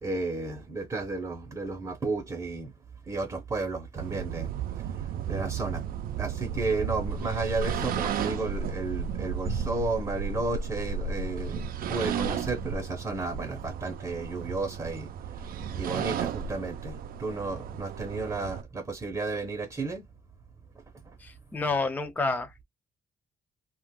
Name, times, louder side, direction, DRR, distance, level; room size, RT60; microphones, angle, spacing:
voice 1, 0.0-2.7 3.1-4.5 5.3-5.8 6.2-11.6 11.9-15.1 15.7-20.0, right 3 dB, 20° right, 0.7 m, -32 dB
sound 1, 4.0-18.6, right 7 dB, 65° right, 0.4 m, -34 dB
voice 2, 21.2-22.6, left 3 dB, 10° left, 0.5 m, -29 dB
2.4 x 2.2 x 3.5 m
cardioid pair, 100°, 16 cm